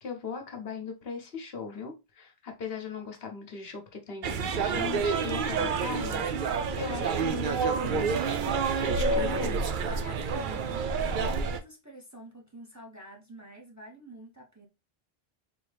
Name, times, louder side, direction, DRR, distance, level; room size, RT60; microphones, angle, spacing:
voice 1, 0.0-9.6, left 6 dB, 75° left, 1.2 m, -39 dB
sound 1, 4.2-11.6, right 5 dB, 60° right, 0.6 m, -28 dB
voice 2, 9.8-14.7, right 1 dB, 20° right, 0.8 m, -47 dB
4.0 x 2.7 x 3.3 m
omnidirectional pair, 1.0 m